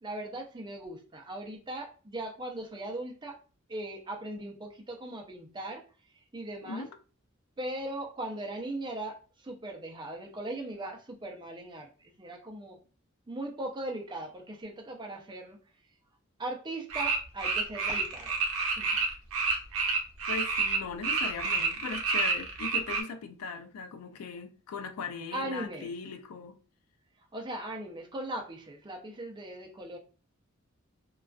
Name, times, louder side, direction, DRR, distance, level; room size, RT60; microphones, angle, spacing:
voice 1, 0.0-3.4 3.7-5.8 6.1-6.9 7.6-12.8 13.3-15.6 16.4-19.0 25.3-25.9 27.2-30.0, right 1 dB, 20° right, 0.5 m, -39 dB
sound 1, 16.9-20.8 21.0-23.0, right 4 dB, 80° right, 0.6 m, -29 dB
voice 2, 20.3-26.6, left 5 dB, 90° left, 0.3 m, -39 dB
2.3 x 2.3 x 2.3 m
head